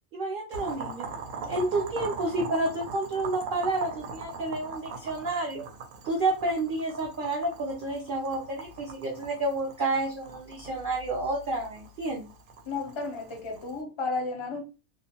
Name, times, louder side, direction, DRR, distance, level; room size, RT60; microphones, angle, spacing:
voice 1, 0.1-1.1 1.4-5.6 6.0-12.3, right 2 dB, 55° right, 0.6 m, -30 dB
Boiling, 0.5-13.8, right 4 dB, 75° right, 0.9 m, -41 dB
voice 2, 12.7-14.6, left 3 dB, 35° left, 0.4 m, -33 dB
2.5 x 2.1 x 2.8 m
omnidirectional pair, 1.4 m